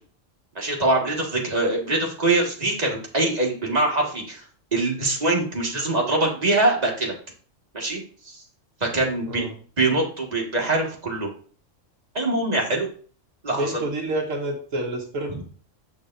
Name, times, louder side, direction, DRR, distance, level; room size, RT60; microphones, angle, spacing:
voice 1, 0.6-4.4 4.7-7.1 7.7-8.4 8.8-11.3 12.1-12.9 13.4-13.8 15.3-15.4, right 2 dB, 30° right, -1 dB, 1.8 m, -23 dB
voice 2, 13.5-15.4, right 1 dB, 80° right, 0 dB, 1.6 m, -28 dB
7.9 x 6.7 x 2.6 m, 0.44 s
omnidirectional pair, 1.3 m